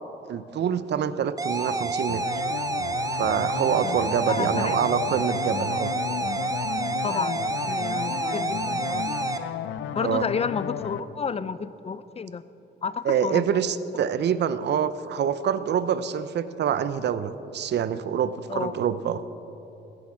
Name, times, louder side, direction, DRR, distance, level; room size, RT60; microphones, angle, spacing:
voice 1, 0.3-2.2 3.2-5.9 10.0-10.3 13.0-19.2, right 8 dB, 60° right, 13 dB, 0.7 m, -26 dB
sound 1, 1.4-9.4, right 2 dB, 15° right, 0.8 m, -29 dB
sound 2, 2.1-11.0, left 9 dB, 80° left, 0.6 m, -34 dB
voice 2, 4.3-4.7 7.0-9.1 10.0-12.4 12.8-13.5 18.5-18.7, left 5 dB, 30° left, 15 dB, 0.6 m, -31 dB
16.0 x 10.0 x 5.8 m, 3.0 s
cardioid pair, 90°, 20 cm